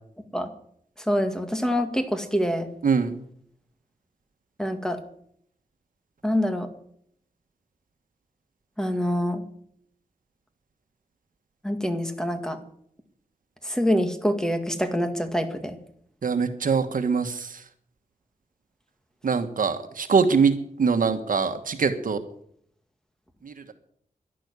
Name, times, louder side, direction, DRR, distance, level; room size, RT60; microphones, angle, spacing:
voice 1, 1.1-2.7 4.6-5.0 6.2-6.7 8.8-9.4 11.6-12.6 13.6-15.8, equal, 5° left, 7 dB, 2.0 m, -25 dB
voice 2, 2.8-3.2 16.2-17.6 19.2-22.2 23.4-23.5, right 5 dB, 70° right, 8 dB, 1.5 m, -23 dB
11.5 x 11.5 x 9.7 m, 0.68 s
wide cardioid pair, 110°, 14 cm